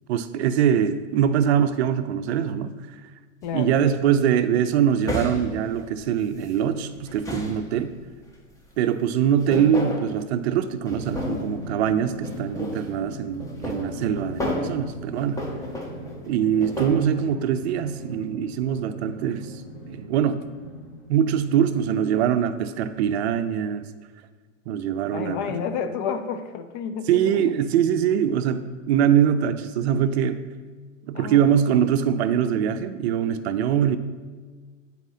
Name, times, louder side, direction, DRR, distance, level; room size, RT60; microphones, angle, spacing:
voice 1, 0.1-2.7 3.5-7.9 8.8-15.4 16.3-19.5 19.9-20.4 21.1-23.9 24.7-25.6 27.1-30.4 31.1-34.0, right 9 dB, 55° right, 10 dB, 0.5 m, -23 dB
voice 2, 3.4-3.8 25.1-27.5 31.1-31.5, left 7 dB, 40° left, 8 dB, 0.4 m, -30 dB
sound 1, 3.4-3.7 5.0-6.5 6.9-8.0 9.1-10.2 10.9-11.7 12.2-12.9 13.4-14.8 15.2-17.0, left 1 dB, 10° left, 0.9 m, -32 dB
Drum, 11.1-22.1, equal, 55° left, 1.8 m, -40 dB
9.6 x 4.2 x 2.7 m, 1.4 s
hypercardioid pair, 115°, 38 cm